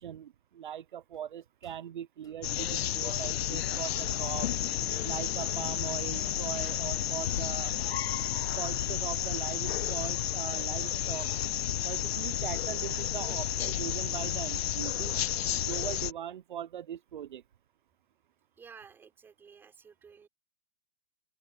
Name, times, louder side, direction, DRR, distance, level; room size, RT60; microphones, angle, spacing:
voice 1, 0.0-4.5 5.0-7.7 8.6-11.3 11.8-15.2 15.6-17.4, right 10 dB, 55° right, 0.7 m, -40 dB
sound 1, 1.1-2.3 2.6-2.7 3.0-3.1 3.4-4.8 5.1-6.7 7.0-8.3 8.6-8.7, left 11 dB, 10° left, 6.6 m, -66 dB
sound 2, 2.4-16.1, left 11 dB, 80° left, 0.5 m, -31 dB
voice 2, 18.6-20.3, right 6 dB, 5° right, 4.6 m, -53 dB
open air
hypercardioid pair, 175°, 30 cm